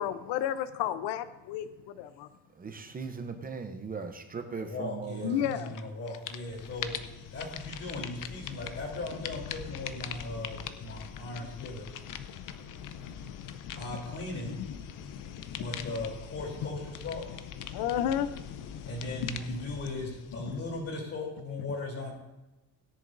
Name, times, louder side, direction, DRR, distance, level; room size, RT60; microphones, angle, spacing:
voice 1, 0.0-2.3 5.2-5.8 11.1-11.3 12.3-13.8 14.4-16.0 16.6-16.7 17.7-19.6, left 10 dB, 85° left, 12 dB, 0.7 m, -34 dB
voice 2, 2.5-5.4, right 5 dB, 20° right, 7 dB, 0.7 m, -38 dB
voice 3, 4.6-7.0 7.3-11.9 13.8-14.5 15.6-17.3 18.9-22.1, left 2 dB, 35° left, -1 dB, 3.2 m, -38 dB
sound 1, 5.4-5.8 6.1-21.1, left 8 dB, 50° left, 0.7 m, -42 dB
17.5 x 10.5 x 2.6 m, 1.0 s
cardioid pair, 160°, 40 cm